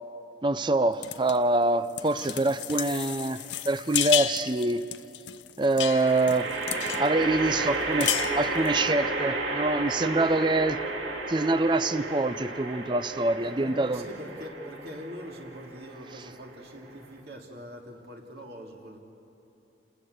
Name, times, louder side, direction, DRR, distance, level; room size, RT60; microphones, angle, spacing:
voice 1, 0.4-4.9 5.6-6.5 7.0-8.1 8.4-10.8 11.3-14.0, right 2 dB, 25° right, 0.5 m, -25 dB
sound 1, 1.0-1.4 1.9-7.1 7.5-7.6 7.8-8.8, left 12 dB, 80° left, 0.7 m, -32 dB
sound 2, 2.7-3.3 5.8-17.2, right 2 dB, 90° right, 2.7 m, -33 dB
voice 2, 13.4-19.0, equal, 55° right, 2.8 m, -43 dB
29.0 x 20.0 x 8.1 m
head